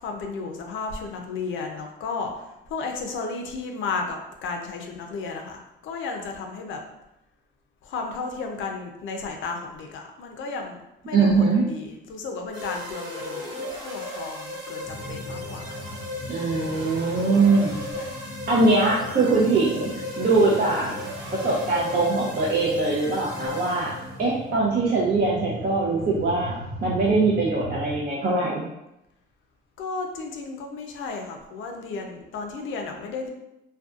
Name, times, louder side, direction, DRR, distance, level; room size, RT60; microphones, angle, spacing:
voice 1, 0.0-6.8 7.8-13.5 13.8-16.0 17.9-18.1 25.4-25.8 29.8-33.3, left 4 dB, 75° left, 3 dB, 0.5 m, -34 dB
voice 2, 11.1-11.6 16.3-17.8 18.5-19.9 20.2-20.9 21.3-23.9 24.2-28.6, right 3 dB, 50° right, -5 dB, 0.5 m, -22 dB
sound 1, 12.5-24.3, left 1 dB, 70° right, 1.0 m, -36 dB
sound 2, 14.9-28.0, left 1 dB, 5° left, 0.6 m, -39 dB
2.6 x 2.2 x 2.3 m, 0.88 s
cardioid pair, 90°, 20 cm